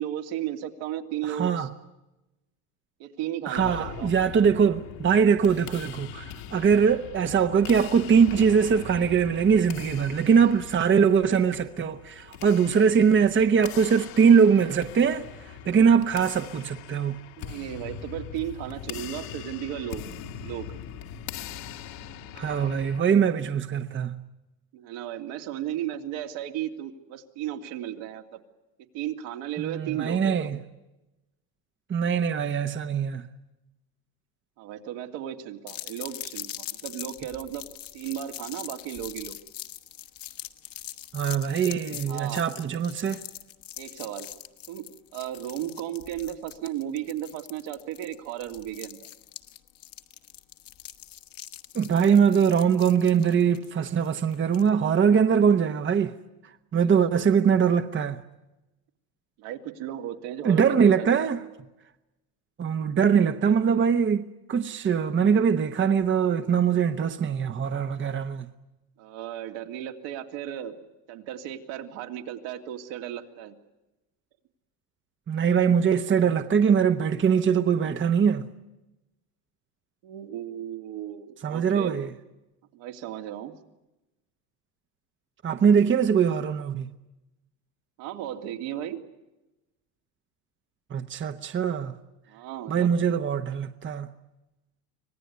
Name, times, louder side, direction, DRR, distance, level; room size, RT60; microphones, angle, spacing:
voice 1, 0.0-1.7 3.0-4.1 17.4-20.0 20.4-20.7 24.7-28.4 28.9-30.5 34.6-37.7 37.9-39.4 42.1-42.5 43.8-44.3 44.7-49.1 59.4-61.1 69.0-70.8 71.1-73.5 80.0-82.1 82.7-83.5 88.0-89.0 92.3-92.9, right 11 dB, 70° right, 2.8 m, -35 dB
voice 2, 1.2-1.7 3.5-17.2 22.3-24.2 29.6-30.6 31.9-33.3 41.1-43.2 51.7-56.1 56.7-58.2 60.4-61.4 62.6-68.5 75.3-78.5 81.4-82.1 85.4-86.9 90.9-91.9 92.7-94.1, right 7 dB, 25° right, 1.1 m, -22 dB
sound 1, 3.5-23.0, left 9 dB, 70° left, 2.4 m, -41 dB
sound 2, 35.7-54.7, left 12 dB, 45° left, 1.5 m, -42 dB
25.5 x 18.0 x 9.6 m
supercardioid pair, 105°, 46 cm